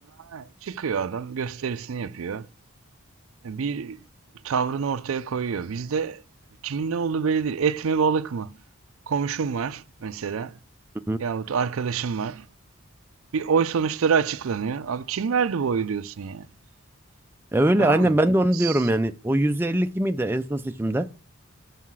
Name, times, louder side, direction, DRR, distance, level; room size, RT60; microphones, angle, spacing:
voice 1, 0.2-2.5 3.4-4.0 4.4-6.2 6.6-8.5 9.1-10.6 11.2-12.5 13.3-16.5 17.8-18.1 18.5-18.8, right 6 dB, 80° right, 0.4 m, -26 dB
voice 2, 17.5-21.1, right 1 dB, 10° right, 0.3 m, -22 dB
5.7 x 5.5 x 6.1 m
head